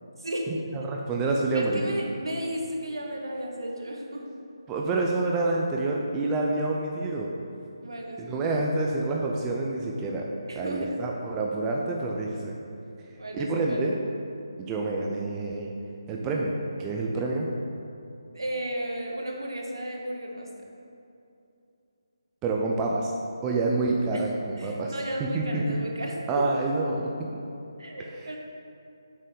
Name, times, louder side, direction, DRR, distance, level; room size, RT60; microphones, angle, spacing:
voice 1, 0.2-0.6 1.5-4.3 7.8-8.5 10.5-11.0 13.2-13.8 18.3-20.5 24.1-24.2 24.6-26.4 27.8-28.4, right 1 dB, 80° right, 0 dB, 1.3 m, -34 dB
voice 2, 0.7-1.9 4.7-7.3 8.2-10.2 10.6-12.5 13.3-14.0 14.7-15.7 16.1-16.5 16.8-17.5 22.4-23.1 23.4-24.9 25.3-25.8 26.3-27.1 28.1-28.4, right 2 dB, 15° right, -1 dB, 0.5 m, -27 dB
7.3 x 4.3 x 5.3 m, 2.7 s
figure-of-eight pair, 155°, 2 cm